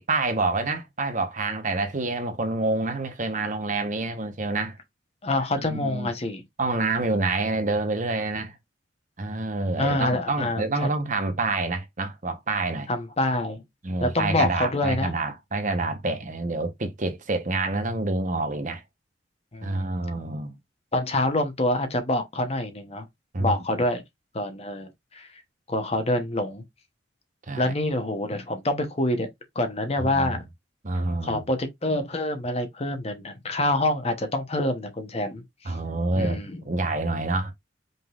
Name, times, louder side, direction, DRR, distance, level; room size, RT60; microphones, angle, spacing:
voice 1, 0.0-4.8 5.6-6.1 6.6-8.5 9.2-12.9 13.8-18.8 19.6-20.6 23.3-23.5 27.5-27.7 30.0-30.4 30.8-31.5 35.6-36.4 36.6-37.5, right 2 dB, 45° right, 1.0 m, -27 dB
voice 2, 5.2-6.4 9.8-10.9 12.9-13.6 14.0-15.1 19.5-19.9 20.9-23.1 23.4-24.0 24.3-25.3 25.7-26.6 27.6-29.3 29.5-30.4 31.2-35.7 36.1-36.5, left 1 dB, 35° left, 0.9 m, -26 dB
5.4 x 3.8 x 2.4 m
head